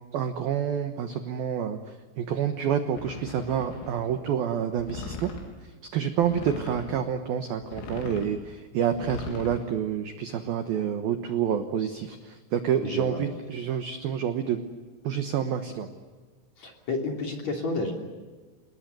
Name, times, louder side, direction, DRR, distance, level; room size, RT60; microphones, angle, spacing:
voice 1, 0.1-1.8 2.2-5.3 5.9-14.6 15.0-15.9, right 8 dB, 75° right, 8 dB, 2.2 m, -28 dB
sound 1, 3.0-4.1 4.8-5.5 6.2-7.0 7.6-8.4 8.9-9.6, left 4 dB, 85° left, 6.6 m, -39 dB
voice 2, 12.8-13.2 16.6-17.9, left 3 dB, 40° left, 2 dB, 3.6 m, -31 dB
28.5 x 20.0 x 9.5 m, 1.4 s
omnidirectional pair, 6.0 m